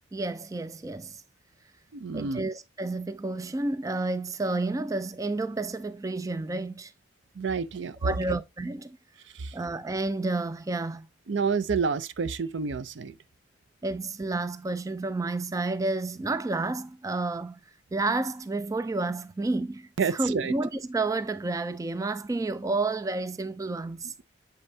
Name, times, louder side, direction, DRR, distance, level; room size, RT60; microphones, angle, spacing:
voice 1, 0.1-1.2 2.1-6.9 8.0-9.0 9.5-11.1 13.8-17.6 17.9-24.1, right 2 dB, 15° right, 0.3 m, -30 dB
voice 2, 1.9-2.4 7.4-8.4 9.3-9.6 11.3-13.2 20.0-20.5, right 5 dB, 70° right, 0.5 m, -29 dB
7.5 x 5.3 x 2.7 m
head